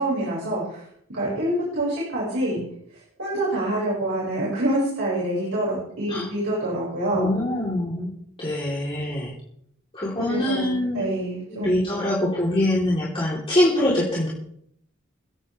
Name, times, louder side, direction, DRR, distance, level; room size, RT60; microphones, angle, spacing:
voice 1, 0.0-2.6 3.2-7.3 10.3-11.8, right 1 dB, 75° right, -7 dB, 6.6 m, -26 dB
voice 2, 7.1-8.1 8.4-9.3 9.9-11.1 11.5-14.3, left 1 dB, 25° left, -7 dB, 4.1 m, -24 dB
29.5 x 9.8 x 3.6 m, 0.68 s
head